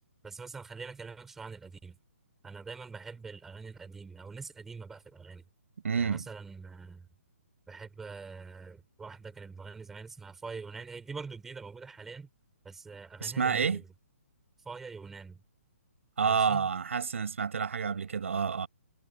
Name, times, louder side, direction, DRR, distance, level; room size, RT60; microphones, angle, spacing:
voice 1, 0.2-2.0 2.4-5.4 6.0-7.1 7.7-12.3 12.6-13.8 14.6-15.4 16.2-16.7, right 4 dB, 5° right, 6.0 m, -44 dB
voice 2, 5.8-6.3 13.2-13.8 16.2-18.7, right 6 dB, 60° right, 7.9 m, -29 dB
hypercardioid pair, 180°, 8 cm